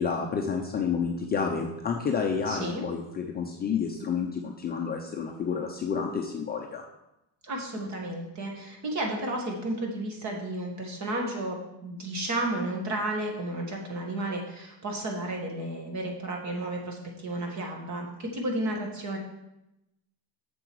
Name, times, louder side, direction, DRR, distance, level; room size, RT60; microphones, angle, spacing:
voice 1, 0.0-6.8, left 6 dB, 20° left, 1 dB, 0.5 m, -30 dB
voice 2, 2.5-2.8 7.4-19.2, right 1 dB, 40° right, 1 dB, 1.8 m, -32 dB
7.8 x 6.9 x 4.7 m, 0.90 s
cardioid pair, 165°, 44 cm